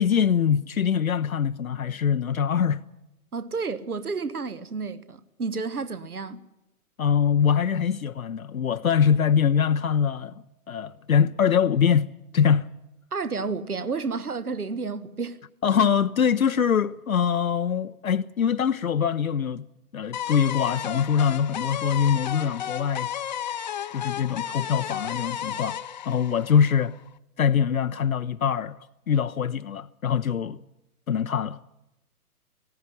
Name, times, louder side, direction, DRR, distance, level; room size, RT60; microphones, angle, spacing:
voice 1, 0.0-2.8 7.0-12.1 12.3-12.7 15.6-19.6 19.9-23.1 23.9-25.8 26.0-27.0 27.4-30.6 31.1-31.6, left 7 dB, 65° left, 0.7 m, -23 dB
voice 2, 3.3-6.4 13.1-15.4, right 4 dB, 75° right, 1.4 m, -31 dB
sound 1, 20.1-27.1, left 9 dB, 30° left, 0.6 m, -33 dB
18.5 x 16.0 x 10.0 m
figure-of-eight pair, 125°, 45 cm